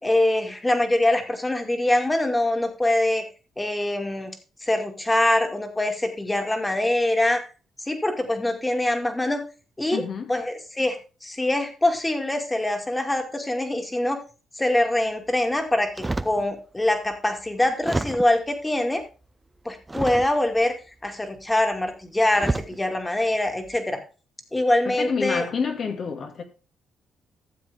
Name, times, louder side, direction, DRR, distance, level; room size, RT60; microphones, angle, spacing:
voice 1, 0.0-3.2 3.6-4.3 4.6-7.4 7.8-9.4 9.8-10.0 10.3-14.2 14.6-19.0 19.6-20.7 21.0-24.0 24.5-25.4, left 1 dB, 15° left, 2.4 m, -24 dB
voice 2, 9.9-10.3 24.8-26.4, left 5 dB, 55° left, 2.1 m, -28 dB
sound 1, 16.0-16.5 17.1-17.2 17.8-18.5 19.9-20.6 21.7-21.9 22.4-22.8 23.5-23.8, right 2 dB, 15° right, 0.6 m, -29 dB
13.5 x 7.4 x 3.5 m
cardioid pair, 90°, 0 cm